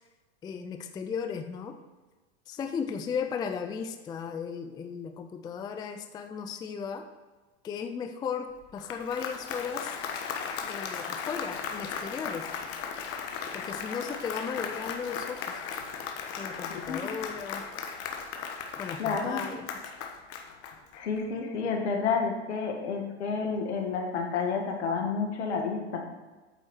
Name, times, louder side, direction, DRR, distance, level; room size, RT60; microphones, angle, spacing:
voice 1, 0.4-1.8 2.5-7.0 7.6-10.0 10.6-12.5 13.5-15.6 16.4-17.6 18.8-19.7, left 6 dB, 10° left, 7 dB, 0.4 m, -36 dB
Applause, 8.6-21.2, left 6 dB, 45° left, 1.1 m, -37 dB
voice 2, 16.7-17.0 19.0-19.4 20.9-26.1, left 5 dB, 75° left, 3 dB, 1.8 m, -30 dB
9.0 x 4.3 x 6.3 m, 1.2 s
hypercardioid pair, 115°, 34 cm